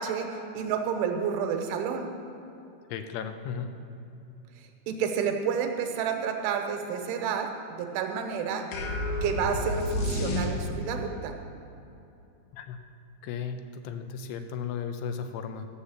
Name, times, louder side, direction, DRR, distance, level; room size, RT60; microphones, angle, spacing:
voice 1, 0.0-2.1 4.9-8.7 9.2-11.3, right 7 dB, 80° right, 4 dB, 3.4 m, -30 dB
voice 2, 2.9-3.7 12.5-12.8 13.2-15.7, left 7 dB, 85° left, 7 dB, 3.3 m, -35 dB
sound 1, 8.7-11.0, left 1 dB, 70° left, 2.0 m, -30 dB
13.5 x 7.4 x 7.2 m, 2.7 s
omnidirectional pair, 5.5 m